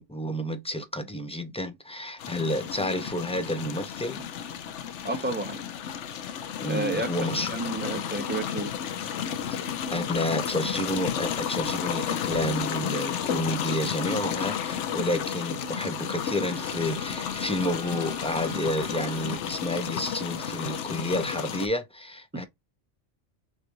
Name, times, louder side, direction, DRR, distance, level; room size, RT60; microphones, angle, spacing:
voice 1, 0.0-4.2 6.6-7.5 9.4-22.4, left 1 dB, 10° left, 0.3 m, -30 dB
sound 1, 2.2-21.7, left 8 dB, 80° left, 1.0 m, -32 dB
voice 2, 5.0-5.6 6.7-7.1 7.5-8.7 22.3-22.5, right 2 dB, 10° right, 0.8 m, -31 dB
Trumpet, 14.9-19.4, right 4 dB, 55° right, 1.9 m, -46 dB
6.7 x 2.5 x 2.9 m
omnidirectional pair, 1.2 m